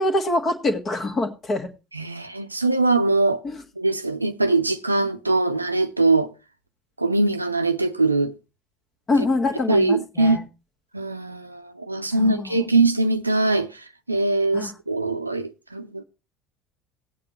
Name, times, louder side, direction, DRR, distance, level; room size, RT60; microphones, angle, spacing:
voice 1, 0.0-1.7 3.4-3.6 9.1-10.4 12.2-12.6 14.5-14.7, left 2 dB, 30° left, 1.6 m, -24 dB
voice 2, 1.9-3.4 3.8-6.3 7.0-8.3 9.7-10.4 10.9-16.0, right 2 dB, 85° right, 0.5 m, -22 dB
17.0 x 8.6 x 3.0 m
figure-of-eight pair, 65°, 0 cm